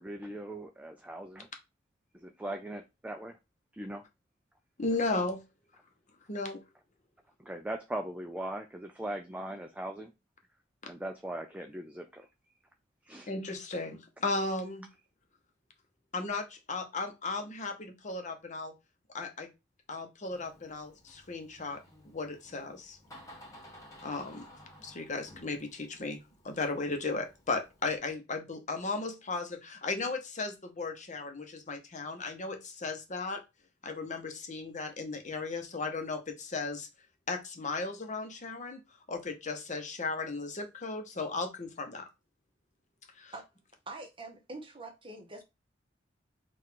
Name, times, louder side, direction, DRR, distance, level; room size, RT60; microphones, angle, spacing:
voice 1, 0.0-1.5 2.1-3.3 3.7-4.0 7.4-10.1 10.9-12.3 13.1-13.3, right 1 dB, 5° right, 0.4 m, -39 dB
voice 2, 4.8-5.4 6.3-6.6 13.3-14.9 16.1-18.7 19.1-19.5 19.9-23.0 24.0-24.4 24.8-33.4 33.8-36.9 37.3-38.8 39.1-42.1 43.2-43.3, left 3 dB, 40° left, 0.8 m, -35 dB
Door, 20.3-28.0, equal, 20° left, 1.3 m, -55 dB
voice 3, 43.9-45.4, right 2 dB, 30° right, 1.1 m, -44 dB
4.6 x 2.5 x 3.8 m
head